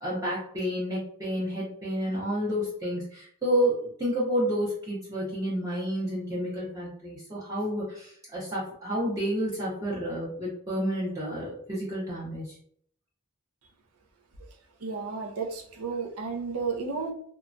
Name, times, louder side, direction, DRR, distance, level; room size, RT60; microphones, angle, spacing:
voice 1, 0.0-12.6, equal, 15° right, 0.6 m, -30 dB
voice 2, 14.8-17.1, right 4 dB, 85° right, 0.6 m, -32 dB
3.0 x 2.2 x 2.6 m
head